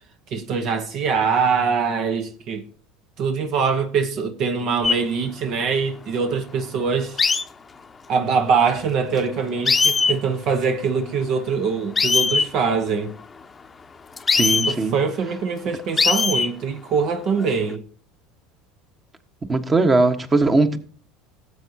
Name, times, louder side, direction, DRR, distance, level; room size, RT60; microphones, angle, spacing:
voice 1, 0.3-2.6 3.2-7.2 8.1-13.1 14.7-17.8, right 5 dB, 55° right, 1.1 m, -23 dB
sound 1, 4.8-5.0 7.2-7.4 9.2-9.3 9.7-10.2 12.0-12.5 14.2-14.7 16.0-16.5 17.4-17.7, left 4 dB, 25° left, 0.8 m, -19 dB
voice 2, 14.3-14.9 19.5-20.8, right 3 dB, 25° right, 1.4 m, -19 dB
18.5 x 8.1 x 2.9 m
hypercardioid pair, 75°, 0 cm